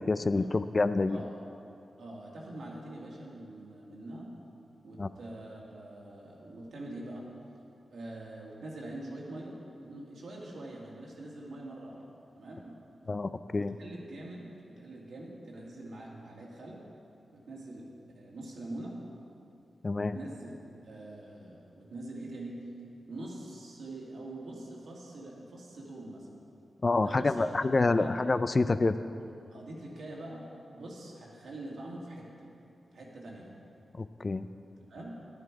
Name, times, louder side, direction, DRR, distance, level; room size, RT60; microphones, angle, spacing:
voice 1, 0.0-1.2 5.0-5.1 13.1-13.7 19.8-20.2 26.8-29.0 33.9-34.5, left 3 dB, 35° left, 12 dB, 0.4 m, -27 dB
voice 2, 2.0-4.3 4.8-7.2 7.9-12.0 12.4-12.8 13.5-14.4 14.8-16.8 17.3-17.9 18.1-18.9 20.0-20.5 20.8-22.6 23.1-26.3 27.0-27.5 28.0-28.1 29.5-30.4 30.7-32.5 32.9-33.5 34.9-35.2, right 1 dB, 85° right, -3 dB, 2.2 m, -44 dB
11.5 x 10.5 x 4.8 m, 2.6 s
wide cardioid pair, 110°, 0 cm